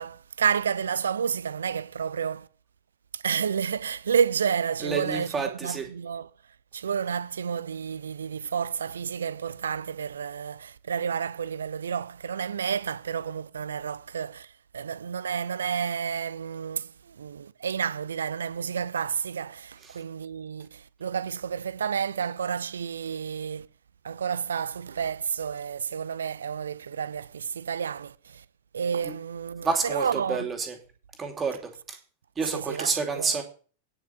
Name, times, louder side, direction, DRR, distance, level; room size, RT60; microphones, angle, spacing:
voice 1, 0.0-2.5 3.1-6.3 6.7-23.7 24.0-28.4 28.7-30.5 32.5-33.4, right 7 dB, 70° right, 0.5 m, -30 dB
voice 2, 4.8-5.8 29.0-29.1 29.6-30.8 31.2-32.0 32.4-33.4, right 5 dB, 20° right, 2.8 m, -29 dB
9.7 x 5.8 x 7.9 m
figure-of-eight pair, 90°, 0 cm